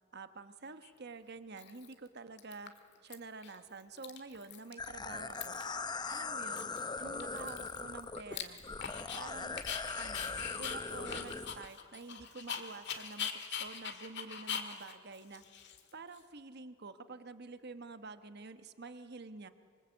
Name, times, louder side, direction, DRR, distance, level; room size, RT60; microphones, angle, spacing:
voice 1, 0.1-2.7 3.0-5.6 6.1-6.7 7.0-8.6 9.1-9.6 10.0-15.4 15.9-19.5, right 3 dB, 55° right, 10 dB, 1.2 m, -48 dB
Dog, 0.8-0.9 1.6-2.1 2.4-3.1 3.4-3.6 3.8-4.9 5.1-5.8 6.1-6.2 6.6-9.2 9.6-16.2, left 8 dB, 60° left, 1.9 m, -42 dB
sound 1, 4.8-11.7, left 4 dB, 20° left, 0.7 m, -40 dB
26.0 x 24.0 x 8.2 m, 2.1 s
head